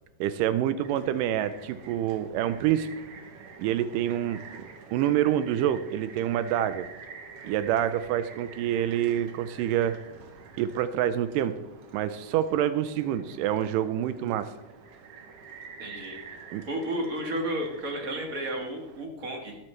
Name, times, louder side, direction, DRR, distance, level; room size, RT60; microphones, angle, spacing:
voice 1, 0.2-2.9 3.6-4.4 4.9-6.9 7.4-10.0 10.6-11.5 11.9-14.5 16.5-16.6, right 11 dB, 90° right, 12 dB, 2.2 m, -27 dB
sound 1, 0.8-19.0, right 5 dB, 65° right, 1.6 m, -47 dB
voice 2, 15.8-16.2 16.7-19.6, right 1 dB, 45° right, 2 dB, 1.0 m, -32 dB
21.0 x 7.4 x 3.2 m, 1.0 s
omnidirectional pair, 3.8 m